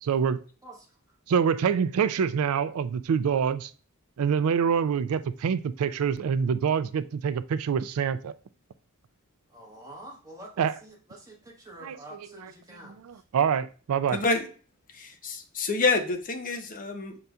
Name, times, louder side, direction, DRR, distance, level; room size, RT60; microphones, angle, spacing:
voice 1, 0.0-0.4 1.3-3.7 4.2-8.3 10.6-10.7 11.8-12.0 13.3-14.2, right 7 dB, 70° right, 13 dB, 0.3 m, -25 dB
voice 2, 0.6-1.2 9.5-13.2, right 1 dB, 15° right, -2 dB, 1.3 m, -47 dB
voice 3, 14.1-14.5 14.9-17.2, left 3 dB, 40° left, 6 dB, 0.6 m, -27 dB
5.6 x 3.9 x 2.3 m, 0.39 s
head